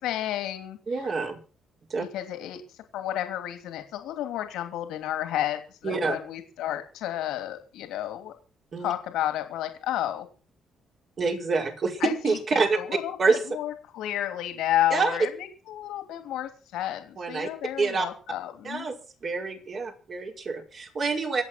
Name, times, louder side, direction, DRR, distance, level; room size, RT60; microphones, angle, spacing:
voice 1, 0.0-1.1 2.0-2.6 2.9-8.3 8.8-10.3 12.0-18.9, left 12 dB, 90° left, 8 dB, 3.1 m, -31 dB
voice 2, 0.9-1.4 1.9-2.0 5.8-6.2 8.7-8.9 11.2-12.8 13.2-13.4 14.9-15.2 17.2-17.5 17.8-18.1 18.6-18.9 19.2-21.4, right 4 dB, 50° right, 2 dB, 5.6 m, -26 dB
25.5 x 8.5 x 6.0 m, 0.37 s
cardioid pair, 90°, 0 cm